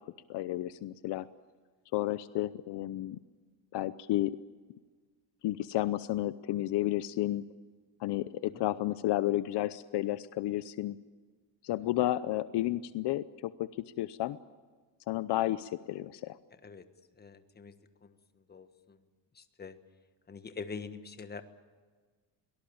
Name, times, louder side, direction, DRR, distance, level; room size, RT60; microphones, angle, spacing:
voice 1, 0.3-1.3 1.9-3.2 3.7-4.3 5.4-7.4 8.0-11.0 11.6-13.7 14.0-14.4 15.1-16.3, left 15 dB, 65° left, 15 dB, 0.8 m, -32 dB
voice 2, 17.2-17.7 18.0-18.2 18.5-19.0 19.3-19.8 20.3-21.4, left 5 dB, 20° left, 10 dB, 1.5 m, -44 dB
23.5 x 18.5 x 8.7 m, 1.4 s
cardioid pair, 150°, 45 cm